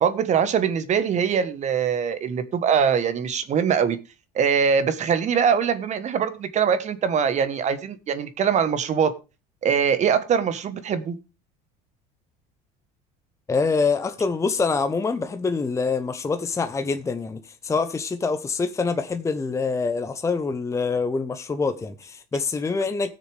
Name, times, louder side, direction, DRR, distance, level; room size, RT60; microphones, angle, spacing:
voice 1, 0.0-4.0 4.3-9.1 9.6-11.2, right 7 dB, 40° right, 1.2 m, -22 dB
voice 2, 13.5-23.1, left 4 dB, 15° left, 0.8 m, -25 dB
18.5 x 6.6 x 3.4 m
supercardioid pair, 115°, 18 cm